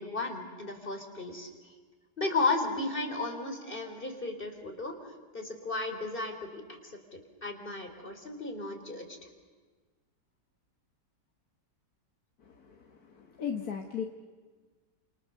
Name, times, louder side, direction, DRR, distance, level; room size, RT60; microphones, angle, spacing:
voice 1, 0.0-1.5 2.2-4.9 5.3-9.2, left 3 dB, 30° left, 5 dB, 3.6 m, -34 dB
voice 2, 12.4-14.0, left 7 dB, 60° left, 2 dB, 2.0 m, -37 dB
30.0 x 28.0 x 6.7 m, 1.4 s
omnidirectional pair, 1.9 m